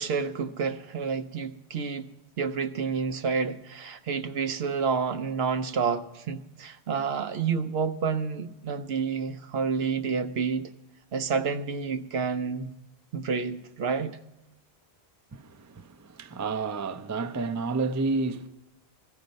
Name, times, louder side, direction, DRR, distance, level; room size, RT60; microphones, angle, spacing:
voice 1, 0.0-2.1 2.4-10.7 11.1-12.7 13.1-14.2, right 5 dB, 70° right, 0.9 m, -29 dB
voice 2, 15.3-18.5, right 3 dB, 25° right, 0.4 m, -30 dB
16.5 x 13.0 x 5.3 m
omnidirectional pair, 1.1 m